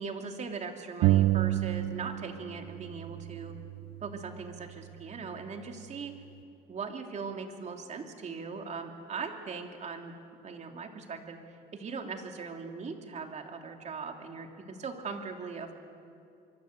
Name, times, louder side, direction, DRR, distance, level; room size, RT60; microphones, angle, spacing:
voice 1, 0.0-3.5 4.0-6.1 6.7-10.1 10.4-11.4 11.7-15.8, right 5 dB, 45° right, 3 dB, 3.1 m, -40 dB
sound 1, 1.0-2.5 2.8-4.6, right 15 dB, 80° right, 0.7 m, -29 dB
25.5 x 23.5 x 8.1 m, 2.6 s
cardioid pair, 110°, 17 cm